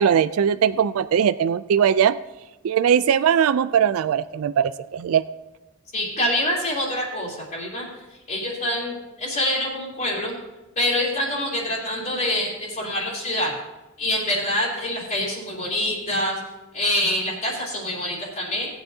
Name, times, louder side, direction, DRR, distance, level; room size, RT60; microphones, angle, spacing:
voice 1, 0.0-2.2 2.6-5.2, right 8 dB, 70° right, 14 dB, 0.3 m, -20 dB
voice 2, 5.9-7.9 8.3-10.3 10.8-13.5 14.0-16.4 16.7-18.7, left 1 dB, 40° left, -8 dB, 3.5 m, -25 dB
18.5 x 9.2 x 2.8 m, 1.1 s
head